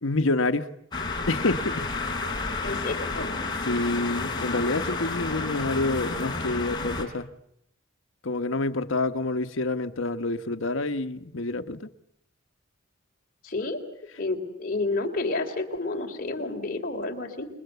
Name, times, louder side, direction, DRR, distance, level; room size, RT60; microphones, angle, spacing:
voice 1, 0.0-0.7 1.3-1.9 3.6-7.3 8.2-11.9, left 2 dB, 80° left, 1.1 m, -27 dB
sound 1, 0.9-7.1, left 3 dB, 20° left, 3.6 m, -31 dB
voice 2, 2.6-3.4 13.4-13.8 14.2-17.5, left 2 dB, 45° left, 3.4 m, -30 dB
28.0 x 22.0 x 8.1 m
head